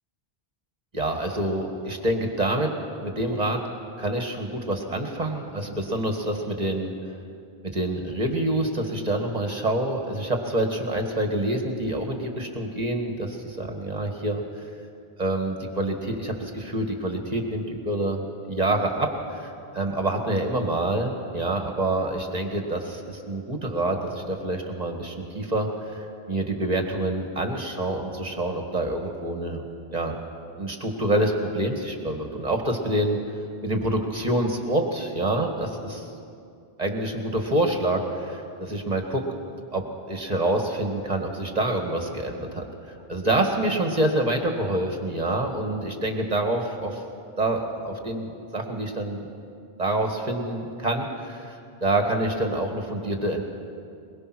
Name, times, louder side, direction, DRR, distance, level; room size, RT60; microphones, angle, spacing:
voice 1, 0.9-2.7 3.0-3.6 4.0-6.9 7.7-14.4 15.2-18.2 18.5-29.7 29.9-30.2 30.6-33.2 33.6-36.1 36.8-39.2 39.7-47.0 47.4-49.3 49.8-53.4, right 1 dB, 40° right, 3 dB, 2.0 m, -27 dB
22.0 x 22.0 x 6.2 m, 2.4 s
omnidirectional pair, 1.0 m